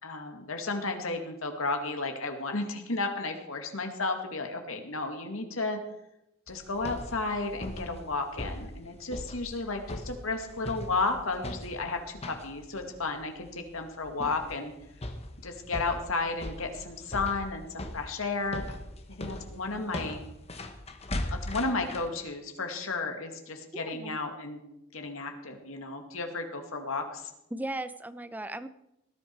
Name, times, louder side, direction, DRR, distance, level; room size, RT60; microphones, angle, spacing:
voice 1, 0.0-5.8 6.5-14.7 15.4-18.6 19.2-20.3 21.3-24.6 24.9-27.3, left 3 dB, 85° left, 4 dB, 2.3 m, -33 dB
sound 1, 6.5-22.1, left 1 dB, 30° left, 1.4 m, -40 dB
voice 2, 23.7-24.2 27.5-28.7, right 1 dB, 10° right, 12 dB, 0.6 m, -37 dB
19.0 x 11.5 x 4.7 m, 0.87 s
head